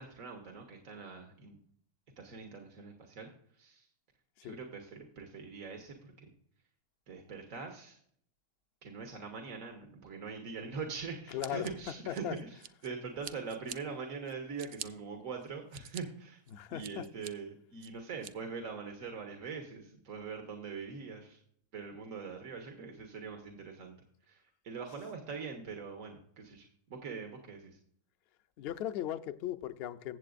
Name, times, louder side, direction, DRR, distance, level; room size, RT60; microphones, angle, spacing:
voice 1, 0.0-1.6 2.2-3.3 3.6-3.9 4.4-6.3 7.1-8.0 8.8-16.4 16.7-21.4 21.7-24.0 24.3-27.8, right 5 dB, 85° right, 1.7 m, -43 dB
voice 2, 11.3-11.7 12.1-12.4 16.5-17.1 28.6-30.2, left 11 dB, 60° left, 0.7 m, -38 dB
Scissors, 11.4-12.9 13.2-13.8 14.3-14.9 15.4-16.0 16.5-17.3 17.8-18.3, right 10 dB, 65° right, 0.8 m, -46 dB
15.0 x 7.8 x 2.5 m
omnidirectional pair, 1.4 m